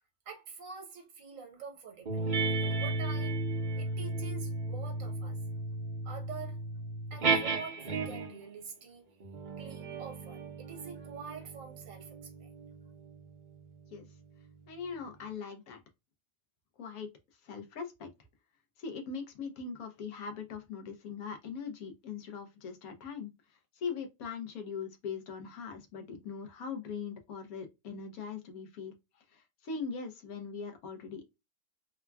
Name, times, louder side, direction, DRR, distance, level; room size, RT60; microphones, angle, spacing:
voice 1, 0.3-5.4 6.0-6.6 7.1-9.1 9.6-12.7, right 5 dB, 65° right, 1.3 m, -47 dB
sound 1, 2.1-8.5 9.2-14.1, right 3 dB, 45° right, 0.7 m, -35 dB
voice 2, 14.7-15.8 16.8-17.1 17.4-18.1 18.8-31.3, left 5 dB, 80° left, 1.2 m, -41 dB
3.5 x 2.2 x 2.2 m
omnidirectional pair, 1.5 m